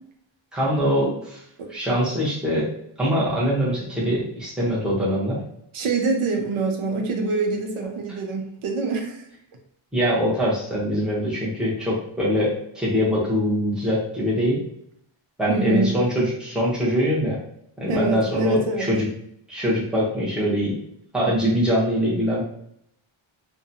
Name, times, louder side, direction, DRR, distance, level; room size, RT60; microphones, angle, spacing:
voice 1, 0.5-1.4 1.7-2.7 3.0-5.4 9.9-14.6 15.4-17.4 17.8-19.0 19.5-20.8 21.1-22.4, equal, ahead, -7 dB, 0.8 m, -23 dB
voice 2, 5.7-9.2 15.5-16.0 17.9-18.9, right 3 dB, 90° right, 2 dB, 0.7 m, -25 dB
2.7 x 2.2 x 2.6 m, 0.73 s
wide cardioid pair, 155°, 49 cm